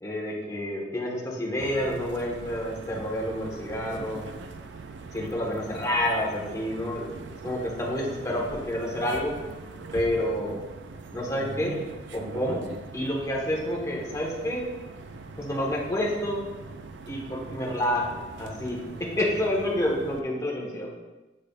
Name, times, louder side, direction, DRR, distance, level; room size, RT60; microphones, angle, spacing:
voice 1, 0.0-4.3 5.1-7.2 7.4-9.3 9.9-10.6 11.1-11.8 12.1-12.6 12.9-14.7 15.4-16.4 17.1-18.8 19.2-20.9, left 1 dB, 20° left, -3 dB, 1.3 m, -29 dB
sound 1, 1.6-20.2, right 3 dB, 75° right, 0.5 m, -42 dB
8.5 x 4.9 x 2.4 m, 1.1 s
head